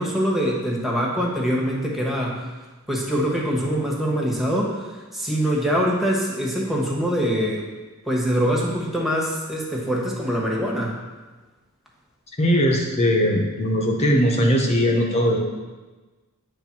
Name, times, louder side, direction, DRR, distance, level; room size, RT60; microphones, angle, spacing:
voice 1, 0.0-2.5 2.9-7.7 8.1-11.0, equal, ahead, -3 dB, 1.2 m, -24 dB
voice 2, 12.4-15.4, equal, 30° left, 1 dB, 0.8 m, -20 dB
8.8 x 3.4 x 5.9 m, 1.3 s
head